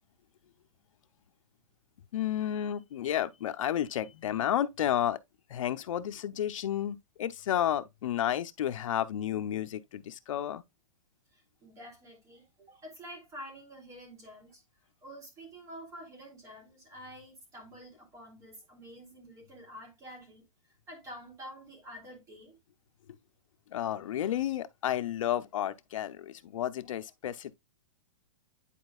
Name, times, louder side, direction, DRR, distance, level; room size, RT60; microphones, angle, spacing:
voice 1, 2.1-5.2 5.5-10.6 23.7-27.5, left 11 dB, 70° left, 0.7 m, -31 dB
voice 2, 11.3-14.6 15.0-20.4 20.9-22.6, equal, 20° right, 3.1 m, -48 dB
10.0 x 4.3 x 2.3 m
hypercardioid pair, 155°, 17 cm